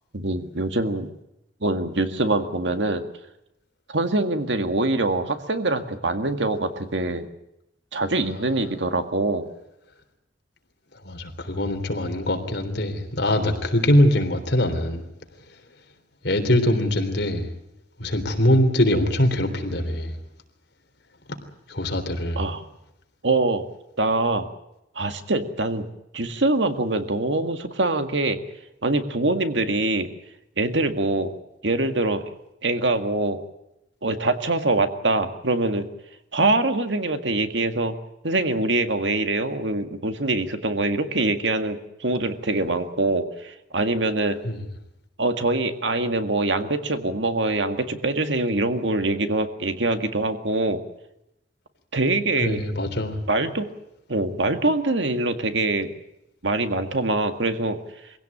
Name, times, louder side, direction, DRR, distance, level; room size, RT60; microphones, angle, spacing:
voice 1, 0.1-1.1 1.6-3.0 3.9-7.3 7.9-9.5 22.4-22.6 23.2-23.7 24.0-24.5 25.0-25.8 26.1-28.4 28.8-30.1 30.6-31.3 31.6-32.2 32.6-33.4 34.0-35.8 36.3-38.0 38.2-44.4 45.2-50.8 51.9-52.6 53.3-53.7 54.1-55.9 56.4-57.8, right 2 dB, 85° right, 8 dB, 1.9 m, -24 dB
voice 2, 11.0-15.0 16.2-17.5 18.0-20.2 21.7-22.4 44.4-44.6 52.4-53.2, left 1 dB, 65° left, 5 dB, 3.6 m, -22 dB
23.5 x 16.5 x 8.7 m, 0.85 s
head